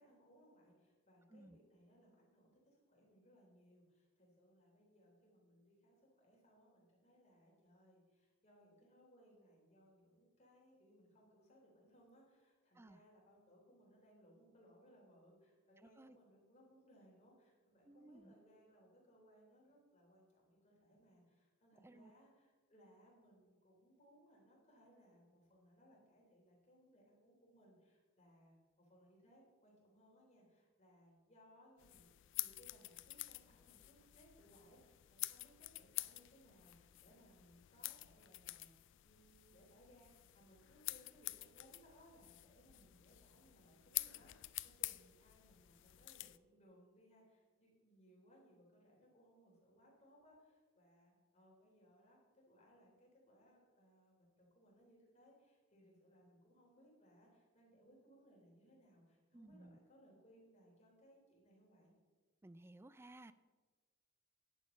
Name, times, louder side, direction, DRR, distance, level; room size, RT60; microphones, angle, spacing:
voice 1, 0.0-32.1 32.4-38.7 39.0-61.9, equal, 35° left, -2 dB, 3.4 m, -67 dB
voice 2, 15.8-16.2 17.9-18.3 21.8-22.1 59.3-59.8 62.4-63.3, right 1 dB, 10° right, 14 dB, 0.3 m, -58 dB
sound 1, 31.8-46.4, left 19 dB, 60° left, 0.4 m, -48 dB
10.5 x 8.5 x 5.3 m, 1.4 s
head